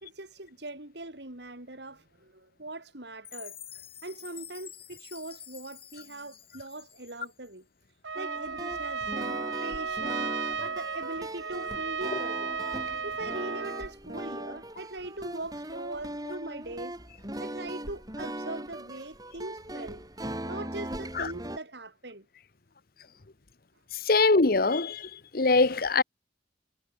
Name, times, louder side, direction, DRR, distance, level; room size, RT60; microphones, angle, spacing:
voice 1, 0.0-3.6 4.0-7.7 8.2-10.3 10.6-12.6 13.0-17.0 17.4-20.0 20.5-22.3, right 2 dB, 65° right, 3.5 m, -41 dB
Chime, 3.2-7.5, left 10 dB, 30° left, 6.0 m, -48 dB
Trumpet, 8.0-13.9, right 5 dB, 85° right, 1.8 m, -34 dB
sound 1, 8.1-21.6, right 1 dB, 20° right, 7.2 m, -39 dB
voice 2, 24.1-25.0 25.3-26.0, left 3 dB, 50° left, 1.0 m, -22 dB
head